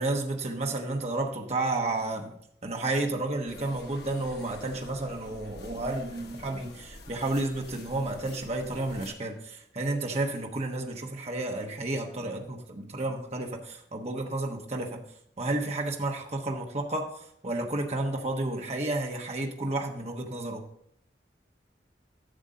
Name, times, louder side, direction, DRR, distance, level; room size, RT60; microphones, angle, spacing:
voice 1, 0.0-2.3 2.6-15.0 15.4-20.6, right 2 dB, 35° right, 1.1 m, -31 dB
sound 1, 3.5-9.1, left 2 dB, 65° left, 1.2 m, -47 dB
11.5 x 7.0 x 3.8 m
head